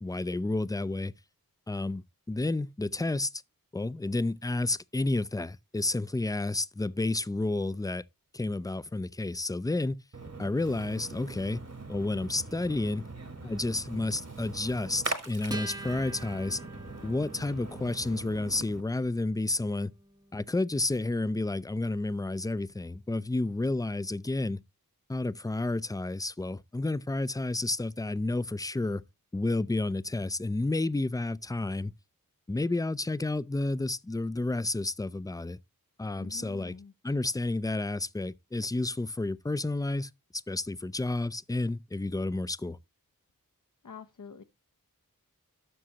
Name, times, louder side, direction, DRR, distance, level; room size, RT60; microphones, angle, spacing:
voice 1, 0.0-1.1 1.7-3.3 3.7-8.0 8.3-10.0 10.4-11.6 11.9-13.0 13.4-16.6 17.0-19.9 20.3-24.6 25.1-29.0 29.3-31.9 32.5-35.6 36.0-36.7 37.0-42.8, left 2 dB, 10° left, 0.4 m, -31 dB
Splash splatter, 10.1-18.8, right 3 dB, 50° right, 1.3 m, -41 dB
Acoustic guitar, 15.5-22.3, right 2 dB, 10° right, 0.8 m, -47 dB
voice 2, 36.2-36.9 43.8-44.4, left 5 dB, 60° left, 0.7 m, -46 dB
12.5 x 6.3 x 2.9 m
wide cardioid pair, 40°, 35 cm